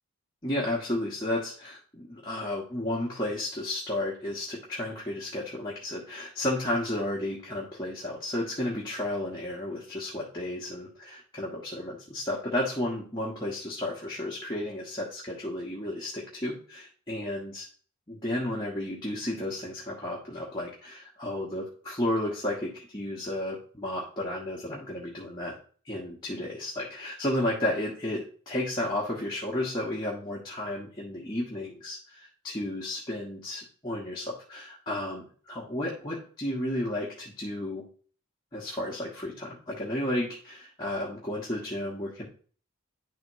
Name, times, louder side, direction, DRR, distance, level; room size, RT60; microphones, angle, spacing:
voice 1, 0.4-17.7 18.1-25.5 25.8-37.8 38.5-42.2, left 1 dB, 20° left, -6 dB, 1.3 m, -33 dB
10.5 x 4.1 x 3.1 m, 0.42 s
head